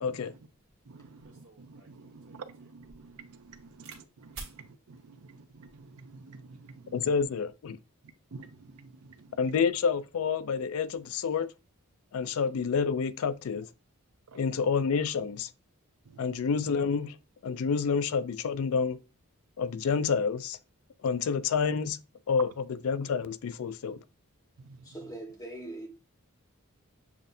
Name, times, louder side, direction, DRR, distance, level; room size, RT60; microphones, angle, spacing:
voice 1, 0.0-0.3 6.9-7.8 9.4-11.5 12.1-13.7 14.3-15.5 16.2-17.2 17.4-19.0 19.6-20.6 21.0-22.0 22.3-24.0, left 6 dB, 70° left, 0.4 m, -28 dB
sound 1, 0.7-0.8 1.2-4.0 4.3-4.6 5.4-5.8, right 3 dB, 60° right, 1.7 m, -49 dB
voice 2, 0.9-7.0 8.3-8.9 9.2-9.3 14.3-14.4 16.1-16.2 24.6-24.8, right 4 dB, 80° right, 0.5 m, -49 dB
voice 3, 24.8-25.9, right 2 dB, 15° left, 1.3 m, -41 dB
7.2 x 2.7 x 2.6 m
head